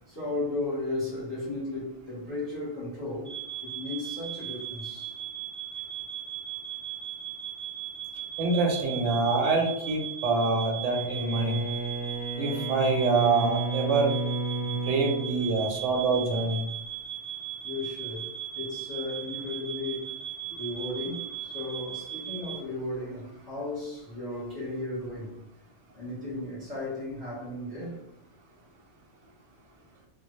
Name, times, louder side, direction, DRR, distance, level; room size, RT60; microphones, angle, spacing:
voice 1, 0.1-3.3 3.6-5.2 17.6-18.3 18.5-20.1 20.6-25.3 25.9-28.0, left 2 dB, 25° left, 0.6 m, -35 dB
sound 1, 3.2-22.6, right 10 dB, 45° right, 0.7 m, -38 dB
voice 2, 8.4-11.6 12.4-14.1 14.6-16.6, right 3 dB, 80° right, 0.9 m, -26 dB
Bowed string instrument, 10.9-16.2, right 3 dB, 65° left, 0.7 m, -33 dB
2.0 x 2.0 x 2.9 m
omnidirectional pair, 1.3 m